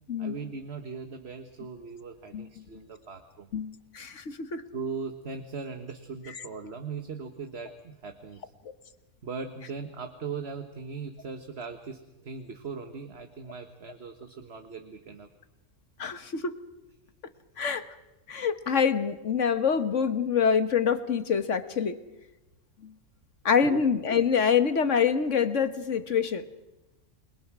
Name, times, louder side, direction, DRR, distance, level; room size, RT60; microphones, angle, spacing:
voice 1, 0.2-3.5 4.7-8.4 9.2-15.3 23.6-23.8, right 5 dB, 55° right, 6 dB, 1.7 m, -39 dB
voice 2, 3.5-4.6 16.0-16.5 17.6-17.8 18.3-22.0 23.4-26.4, left 6 dB, 70° left, 10 dB, 1.7 m, -25 dB
29.0 x 22.0 x 6.2 m, 1.0 s
omnidirectional pair, 1.3 m